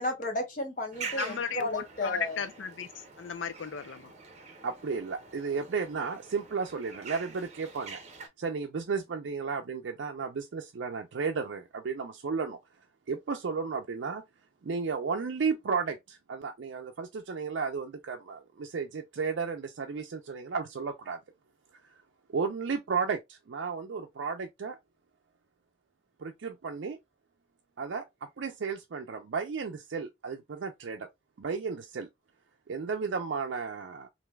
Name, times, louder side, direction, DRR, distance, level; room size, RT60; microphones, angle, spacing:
voice 1, 0.0-2.4, left 1 dB, 45° left, 0.9 m, -33 dB
sound 1, 0.9-8.3, right 5 dB, 35° right, 0.6 m, -45 dB
voice 2, 1.1-4.1, left 6 dB, 80° left, 0.5 m, -35 dB
voice 3, 4.6-8.0 8.4-12.6 13.1-14.2 14.6-21.2 22.3-24.8 26.2-27.0 27.8-31.1 31.4-32.1 32.7-34.1, right 5 dB, 75° right, 0.4 m, -33 dB
3.2 x 2.6 x 2.2 m
head